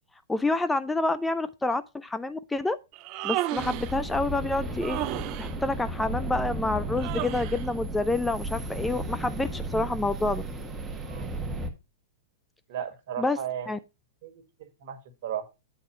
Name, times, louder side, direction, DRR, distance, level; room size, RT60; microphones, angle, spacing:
voice 1, 0.3-2.8 3.2-5.0 5.4-10.4 13.2-13.4 13.7-13.8, left 2 dB, 10° left, 0.4 m, -28 dB
Human voice, 2.9-4.0 4.8-5.5 7.0-7.7, right 16 dB, 40° right, 0.5 m, -33 dB
sound 1, 3.6-11.7, right 2 dB, 10° right, 1.4 m, -34 dB
voice 2, 11.0-11.3 12.7-13.8 14.2-14.3 14.6-15.4, right 9 dB, 60° right, 1.6 m, -35 dB
8.5 x 4.3 x 4.9 m
hypercardioid pair, 120°, 0 cm